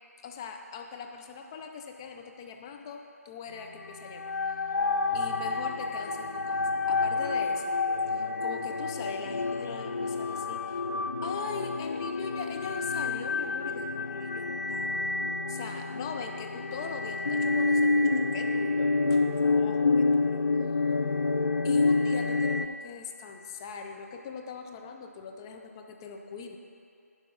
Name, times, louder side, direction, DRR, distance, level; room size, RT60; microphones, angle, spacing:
voice 1, 0.2-4.3 5.1-7.7 8.1-10.8 11.2-15.0 15.5-20.4 21.6-26.6, left 6 dB, 15° left, 3 dB, 0.4 m, -41 dB
sound 1, 3.8-22.7, left 3 dB, 80° left, 0.4 m, -28 dB
11.0 x 4.7 x 5.3 m, 2.5 s
figure-of-eight pair, 155°, 8 cm